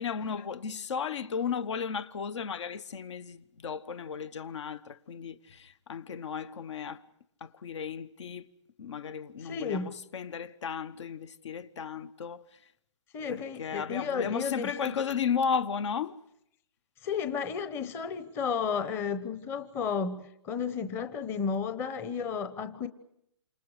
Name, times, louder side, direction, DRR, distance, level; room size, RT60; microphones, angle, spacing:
voice 1, 0.0-7.0 7.4-8.5 8.8-12.6 13.3-16.2, left 6 dB, 65° left, 1.2 m, -34 dB
voice 2, 9.4-9.9 13.1-15.0 17.0-22.9, left 6 dB, 15° left, 0.9 m, -33 dB
28.5 x 26.5 x 5.0 m
hypercardioid pair, 160°, 16 cm